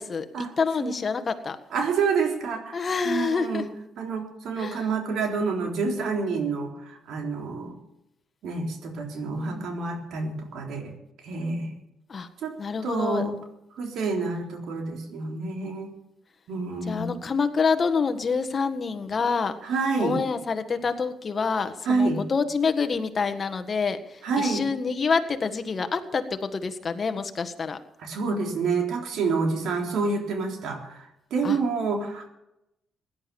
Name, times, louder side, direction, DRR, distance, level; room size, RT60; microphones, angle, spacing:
voice 1, 0.0-1.6 2.7-3.6 4.6-4.8 9.3-9.7 12.1-12.3 12.6-13.2 16.8-19.6 20.0-27.8 31.4-31.6, left 5 dB, 40° left, 9 dB, 1.6 m, -27 dB
voice 2, 1.7-3.7 4.0-7.8 8.4-10.9 11.2-11.7 12.4-12.5 12.8-13.4 13.8-15.9 16.5-17.2 19.6-20.2 21.8-22.2 24.2-24.6 28.0-32.3, right 4 dB, 75° right, 2 dB, 3.7 m, -28 dB
17.0 x 11.0 x 7.1 m, 0.84 s
cardioid pair, 90°, 0 cm